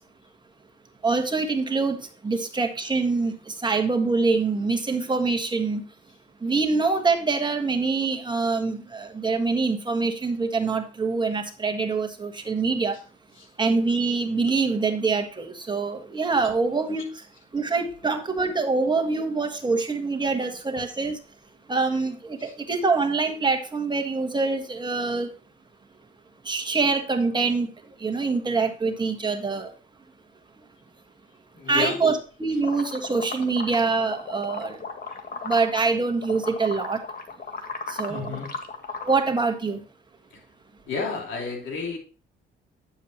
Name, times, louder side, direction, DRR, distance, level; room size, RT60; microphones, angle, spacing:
voice 1, 1.0-2.0 2.2-5.8 6.4-13.0 13.6-17.1 17.5-21.2 21.7-25.3 26.4-27.7 28.0-29.7 31.7-34.8 35.4-37.0 37.9-38.4 39.0-39.8, right 4 dB, 20° right, 1.4 m, -25 dB
voice 2, 31.5-32.2 35.1-35.2 38.1-38.6 40.3-40.4 40.9-42.0, left 4 dB, 75° left, 3.0 m, -32 dB
sound 1, 32.6-35.9 36.2-39.1, left 4 dB, 50° left, 1.6 m, -35 dB
9.5 x 7.2 x 2.9 m
cardioid pair, 90°, 20 cm